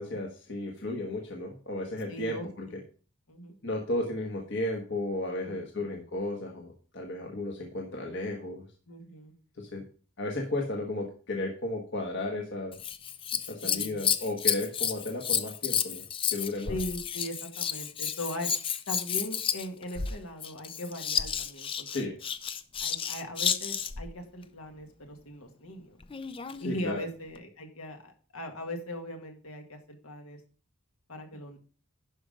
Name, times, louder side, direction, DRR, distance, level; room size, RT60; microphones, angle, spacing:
voice 1, 0.0-2.8 3.6-8.6 9.6-9.8 10.2-12.8 13.5-16.0 16.3-16.7 21.9-22.1 26.6-27.0, left 2 dB, 55° left, 0 dB, 1.5 m, -34 dB
voice 2, 2.1-2.4 3.3-3.6 5.4-5.9 8.9-9.3 13.6-14.1 16.7-18.5 18.9-22.1 22.8-26.0 26.6-30.4 31.1-31.6, left 1 dB, 70° left, 4 dB, 2.0 m, -39 dB
Scissors, 12.7-24.1 26.0-26.6 27.4-27.5, left 8 dB, 25° left, 0.4 m, -31 dB
11.5 x 5.1 x 5.2 m, 0.39 s
head